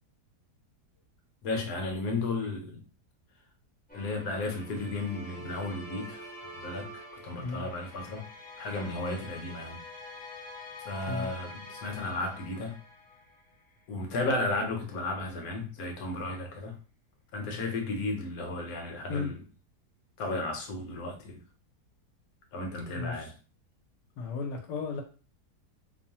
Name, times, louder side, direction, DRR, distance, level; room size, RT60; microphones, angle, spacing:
voice 1, 1.4-2.8 3.9-6.3 6.6-8.3 8.6-9.8 10.8-12.7 13.9-16.7 17.3-19.4 20.2-21.4 22.5-23.3, left 2 dB, 70° left, 1.1 m, -34 dB
sound 1, 3.9-13.7, left 1 dB, 15° left, 0.3 m, -46 dB
voice 2, 22.9-23.3 24.2-25.0, left 4 dB, 90° left, 1.2 m, -34 dB
3.0 x 2.0 x 2.7 m
omnidirectional pair, 1.7 m